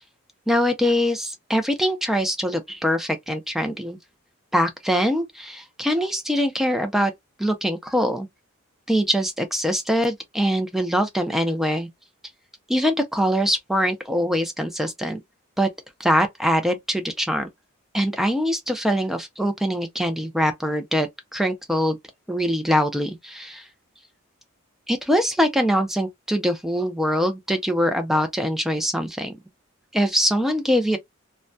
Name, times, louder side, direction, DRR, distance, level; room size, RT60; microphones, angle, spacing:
voice 1, 0.5-4.0 4.5-7.1 7.4-8.3 8.9-11.9 12.7-15.2 15.6-15.7 16.0-17.5 17.9-22.0 22.3-23.7 24.9-29.4 29.9-31.0, equal, ahead, 0.4 m, -23 dB
2.2 x 2.2 x 2.5 m
head